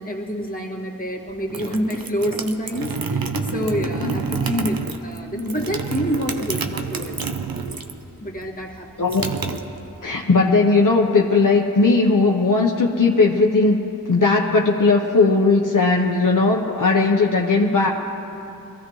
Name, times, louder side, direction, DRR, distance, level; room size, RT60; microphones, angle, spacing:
voice 1, 0.0-7.3 8.2-9.1, equal, 25° left, -2 dB, 2.1 m, -27 dB
sound 1, 1.3-8.1 8.3-10.2, right 4 dB, 80° right, 0.8 m, -28 dB
voice 2, 9.0-9.6 10.0-13.8 14.1-17.9, left 3 dB, 65° left, -1 dB, 1.0 m, -18 dB
22.0 x 15.0 x 3.2 m, 2.7 s
wide cardioid pair, 40°, 34 cm